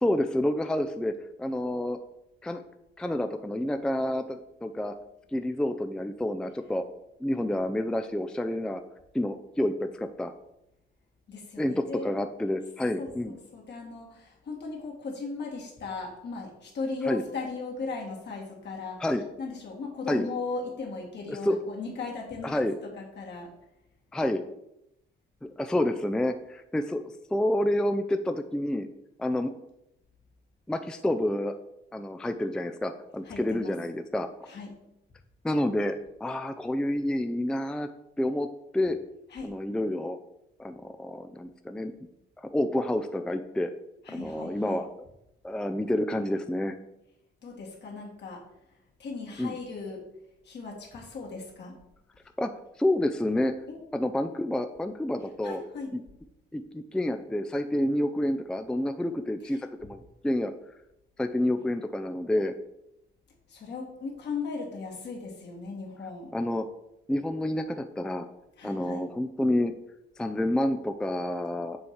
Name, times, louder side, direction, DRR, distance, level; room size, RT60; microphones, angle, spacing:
voice 1, 0.0-2.0 2.4-2.6 3.0-4.9 5.3-6.8 7.2-8.8 9.1-10.3 11.6-11.7 12.0-13.4 17.1-17.2 19.0-19.2 20.1-20.2 21.3-21.6 22.4-22.7 24.1-24.4 25.6-27.0 27.3-28.9 29.2-29.5 30.7-31.5 31.9-34.3 35.4-35.9 36.2-37.9 38.2-38.5 38.7-39.0 39.4-40.2 40.6-41.9 42.4-43.7 44.1-44.9 45.4-46.7 49.4-49.6 52.4-52.5 52.8-53.5 53.9-55.6 55.9-56.0 56.5-60.5 61.2-62.5 66.3-66.7 67.1-68.3 68.6-69.7 70.2-71.8, left 1 dB, 5° left, 8 dB, 0.3 m, -28 dB
voice 2, 11.3-12.1 13.0-19.1 19.4-23.5 25.5-25.6 33.2-33.8 34.5-34.7 39.3-39.6 44.0-44.8 47.4-48.4 48.7-50.0 50.4-51.8 53.7-53.8 55.4-55.9 59.4-59.9 63.5-66.3 68.6-69.0, left 4 dB, 60° left, -1 dB, 2.0 m, -37 dB
6.9 x 3.2 x 5.6 m, 0.84 s
cardioid pair, 90°, 20 cm